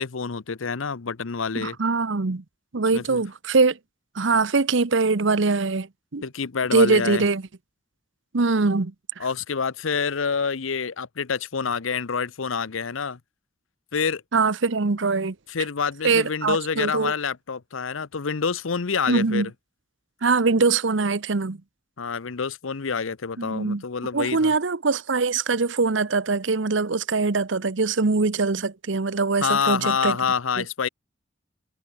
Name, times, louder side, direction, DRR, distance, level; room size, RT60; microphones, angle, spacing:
voice 1, 0.0-1.8 2.9-3.2 6.2-7.2 9.2-13.2 13.9-14.2 15.5-19.5 22.0-24.5 29.4-30.9, left 5 dB, 90° left, 0.8 m, -27 dB
voice 2, 1.6-2.4 2.7-3.8 4.1-5.9 6.1-6.2 6.7-7.4 8.3-8.9 14.3-15.3 16.0-17.1 19.1-19.5 20.2-21.6 23.4-23.8 24.1-30.2 30.6-30.7, right 4 dB, 70° right, 0.9 m, -22 dB
head